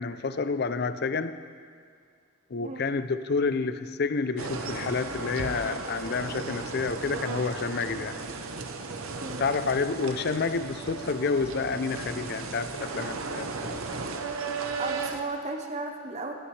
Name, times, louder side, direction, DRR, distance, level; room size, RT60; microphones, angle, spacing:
voice 1, 0.0-1.4 2.5-8.2 9.3-13.8, left 4 dB, 50° left, 12 dB, 0.5 m, -29 dB
sound 1, 4.4-15.2, right 4 dB, 85° right, 0.9 m, -35 dB
voice 2, 14.8-16.3, right 3 dB, 35° right, 4 dB, 0.8 m, -35 dB
18.0 x 11.5 x 3.3 m, 2.1 s
head